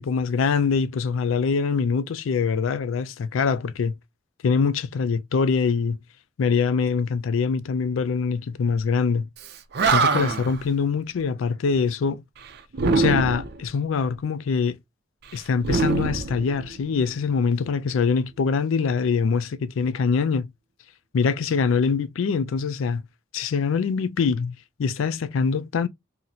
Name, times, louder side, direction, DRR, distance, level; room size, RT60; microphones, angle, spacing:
voice 1, 0.0-3.9 4.4-6.0 6.4-9.3 9.9-12.2 12.9-14.8 15.3-20.5 21.1-23.0 23.3-24.5 24.8-25.9, left 5 dB, 85° left, 0.4 m, -24 dB
Animal, 9.4-9.5 9.7-10.6 12.7-13.6 15.6-16.9, right 4 dB, 55° right, 0.5 m, -23 dB
2.8 x 2.1 x 3.9 m
head